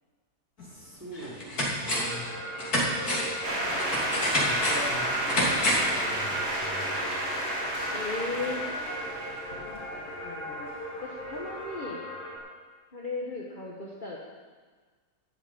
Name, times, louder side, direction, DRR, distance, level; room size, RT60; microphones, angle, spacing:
sound 1, 0.6-0.7 1.1-2.2 2.6-6.0 6.3-6.4, left 1 dB, 75° left, 3.5 m, -28 dB
voice 1, 0.6-2.5 4.4-7.1, right 1 dB, 10° right, -7 dB, 4.0 m, -42 dB
sound 2, 1.9-12.4, equal, 55° left, 4.1 m, -38 dB
sound 3, 3.4-10.2, right 1 dB, 45° right, 2.7 m, -31 dB
voice 2, 7.9-8.6 9.6-10.7 11.0-12.0 12.9-14.2, left 3 dB, 35° left, -4 dB, 1.5 m, -36 dB
13.0 x 7.0 x 8.8 m, 1.5 s
omnidirectional pair, 1.6 m